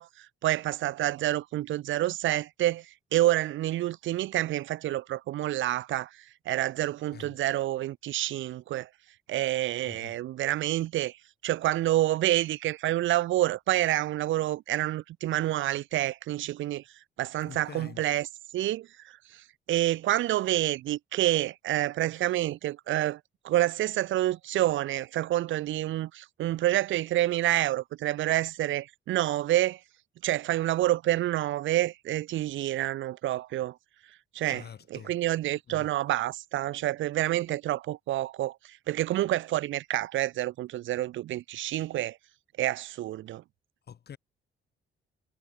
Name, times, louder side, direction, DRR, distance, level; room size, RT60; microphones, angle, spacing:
voice 1, 0.0-2.9 3.1-6.1 6.5-8.9 9.3-11.2 11.4-16.8 17.2-18.3 18.5-23.2 23.4-29.8 30.2-33.8 34.3-34.6 34.9-42.2 42.6-43.4, right 14 dB, 75° right, 0.7 m, -28 dB
voice 2, 9.9-10.2 17.5-18.0 34.5-35.1 35.7-35.9 43.9-44.2, left 8 dB, 55° left, 4.4 m, -45 dB
cardioid pair, 90°, 20 cm